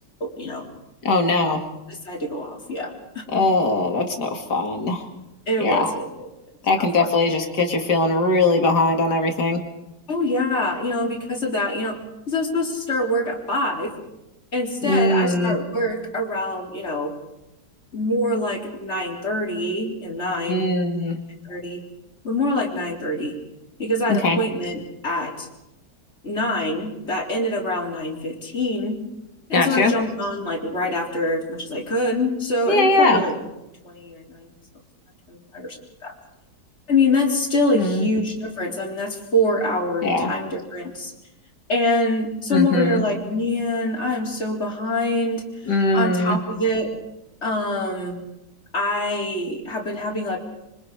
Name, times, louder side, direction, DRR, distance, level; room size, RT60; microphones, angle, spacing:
voice 1, 0.2-0.6 1.9-2.9 3.3-3.4 5.5-6.1 6.7-7.1 10.1-12.0 12.3-13.9 14.5-17.1 17.9-20.7 21.4-21.8 22.2-23.3 23.8-25.5 26.2-29.0 29.5-33.4 33.8-34.5 35.3-35.8 36.0-36.1 36.9-41.1 41.7-46.9 47.4-48.2 48.7-50.4, left 1 dB, 35° left, -2 dB, 4.1 m, -25 dB
voice 2, 1.0-1.6 3.3-5.0 5.6-5.9 6.6-9.6 14.8-15.6 20.5-21.2 24.1-24.4 29.5-29.9 32.7-33.2 37.7-38.1 40.0-40.3 42.5-43.0 45.7-46.4, left 2 dB, 65° left, 3 dB, 3.0 m, -20 dB
26.5 x 24.5 x 5.0 m, 0.92 s
omnidirectional pair, 1.9 m